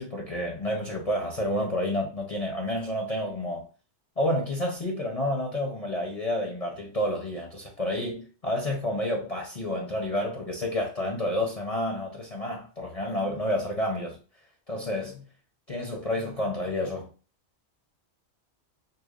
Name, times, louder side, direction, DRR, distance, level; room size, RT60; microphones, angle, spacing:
voice 1, 0.0-3.7 4.2-14.2 14.7-15.2 15.7-17.1, left 1 dB, 35° left, 0.8 m, -29 dB
6.8 x 2.4 x 2.5 m
omnidirectional pair, 1.2 m